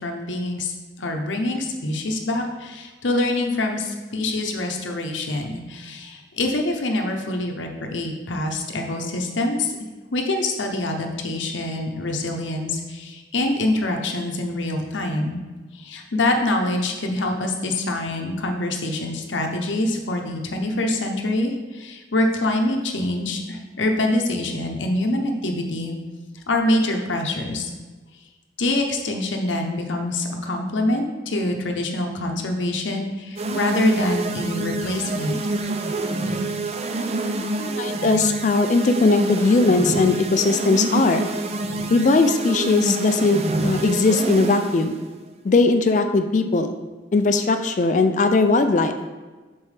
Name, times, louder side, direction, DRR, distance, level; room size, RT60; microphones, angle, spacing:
voice 1, 0.0-9.8 10.1-15.4 15.7-26.0 26.5-27.7 28.6-35.4, left 1 dB, 85° left, 3 dB, 0.7 m, -25 dB
sound 1, 33.4-44.9, right 2 dB, 35° right, 0.4 m, -27 dB
voice 2, 37.6-41.3 41.9-45.0 45.4-46.7 47.1-48.9, left 3 dB, 40° left, 8 dB, 0.3 m, -19 dB
7.2 x 4.5 x 3.3 m, 1.3 s
head